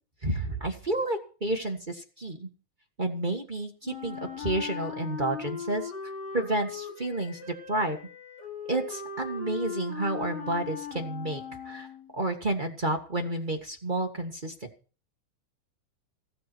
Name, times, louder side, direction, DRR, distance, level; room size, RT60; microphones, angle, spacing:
voice 1, 0.2-2.5 3.0-8.0 8.7-11.9 12.1-14.5, right 2 dB, 35° right, 2 dB, 0.7 m, -30 dB
Wind instrument woodwind instrument, 3.8-12.1, left 6 dB, 75° left, 5.5 m, -39 dB
16.0 x 13.5 x 4.5 m, 0.37 s
omnidirectional pair, 3.8 m